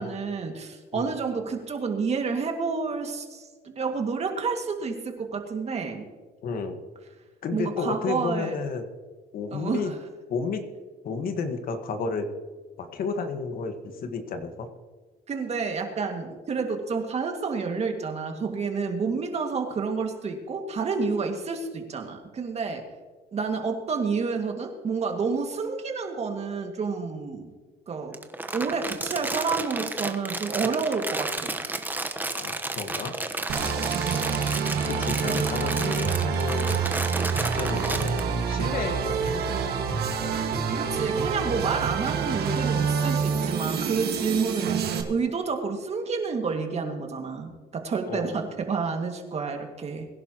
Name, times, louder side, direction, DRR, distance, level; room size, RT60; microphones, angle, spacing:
voice 1, 0.0-6.0 7.5-8.6 9.5-10.0 15.3-22.8 23.3-27.5 27.9-28.2 28.5-31.5 35.3-35.4 40.7-50.1, right 5 dB, 40° right, 4 dB, 2.1 m, -29 dB
voice 2, 6.4-6.8 7.4-8.8 9.3-9.9 10.3-10.6 11.0-12.3 12.8-14.7 32.3-33.2 34.9-36.9 37.5-40.0 48.1-48.3, left 4 dB, 60° left, 6 dB, 1.6 m, -32 dB
Crumpling crinkling, 28.1-38.2, right 2 dB, 10° right, 1.1 m, -32 dB
sound 1, 33.5-45.0, right 6 dB, 70° right, 1.8 m, -27 dB
22.5 x 11.0 x 3.0 m, 1.4 s
cardioid pair, 110°, 17 cm